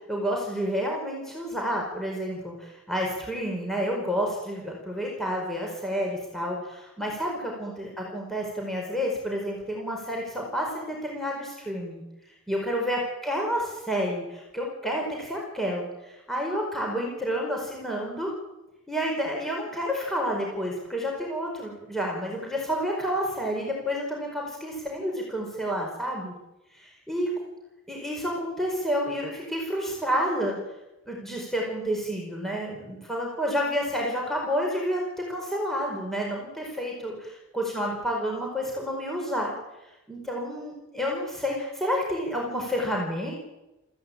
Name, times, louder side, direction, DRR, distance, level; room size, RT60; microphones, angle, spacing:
voice 1, 0.1-12.0 12.5-18.3 18.9-26.3 26.7-27.3 27.9-30.6 31.1-35.0 35.3-39.5 40.1-43.4, equal, ahead, -1 dB, 4.9 m, -30 dB
25.0 x 15.5 x 8.7 m, 0.98 s
head